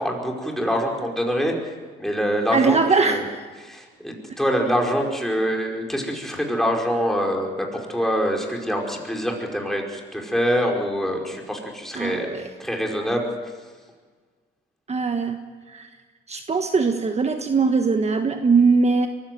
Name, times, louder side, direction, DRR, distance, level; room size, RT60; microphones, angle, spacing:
voice 1, 0.0-1.5 2.0-3.2 3.6-12.3 12.6-13.3, equal, ahead, 0 dB, 5.1 m, -25 dB
voice 2, 2.5-3.4 11.9-12.5 14.9-15.4 15.7-15.9 16.3-19.1, right 4 dB, 35° right, 6 dB, 1.4 m, -21 dB
23.5 x 15.5 x 9.3 m, 1.5 s
cardioid pair, 90°, 20 cm